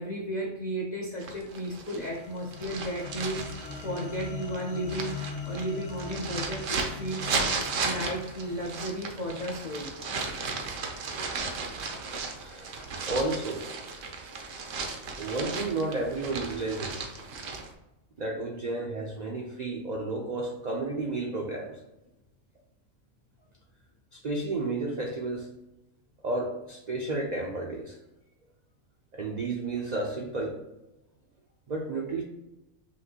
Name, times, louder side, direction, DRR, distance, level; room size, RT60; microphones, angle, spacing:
voice 1, 0.0-9.9, right 1 dB, 50° left, -1 dB, 0.5 m, -34 dB
sound 1, 1.2-17.7, right 4 dB, 70° right, 1.0 m, -35 dB
sound 2, 2.0-10.4, left 5 dB, 90° left, 1.0 m, -42 dB
voice 2, 12.4-12.8 13.1-13.7 15.2-17.0 18.2-21.8 24.1-25.5 26.2-28.0 29.1-30.6 31.7-32.2, right 2 dB, 50° right, -1 dB, 0.5 m, -32 dB
5.7 x 2.6 x 2.8 m, 0.97 s
omnidirectional pair, 1.4 m